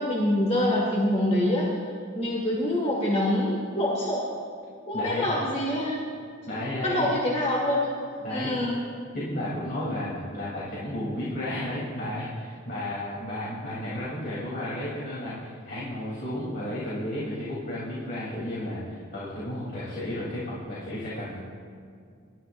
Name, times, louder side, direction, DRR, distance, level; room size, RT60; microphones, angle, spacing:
voice 1, 0.0-1.7 2.1-4.3 4.9-6.1 6.8-7.9 8.3-8.8, left 1 dB, 30° left, -3 dB, 1.9 m, -25 dB
voice 2, 4.9-5.3 6.4-7.1 8.2-8.5 9.1-21.4, left 1 dB, 50° left, -8 dB, 3.4 m, -33 dB
26.0 x 13.5 x 2.6 m, 2.3 s
head